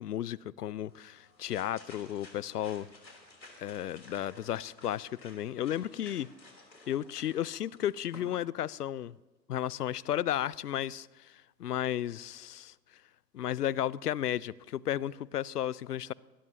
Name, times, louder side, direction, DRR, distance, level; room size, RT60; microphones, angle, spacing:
voice 1, 0.0-2.9 3.6-6.3 6.9-9.2 9.5-12.7 13.3-16.1, left 11 dB, 70° left, 0.6 m, -33 dB
sound 1, 0.9-8.4, left 2 dB, 85° left, 3.8 m, -54 dB
22.5 x 20.0 x 2.9 m
figure-of-eight pair, 110°, 50 cm